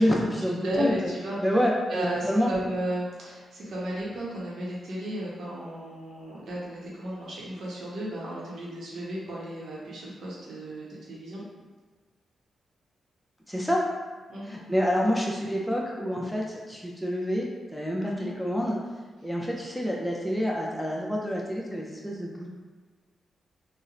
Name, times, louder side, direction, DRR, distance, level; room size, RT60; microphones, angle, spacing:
voice 1, 0.0-1.1 1.4-2.5 13.5-13.9 14.4-18.8 19.2-22.5, equal, 5° left, -3 dB, 0.5 m, -27 dB
voice 2, 0.6-1.4 1.9-11.4 14.3-14.6 18.0-18.3, right 1 dB, 75° right, -6 dB, 0.7 m, -34 dB
2.8 x 2.1 x 2.4 m, 1.4 s
supercardioid pair, 50°, 0 cm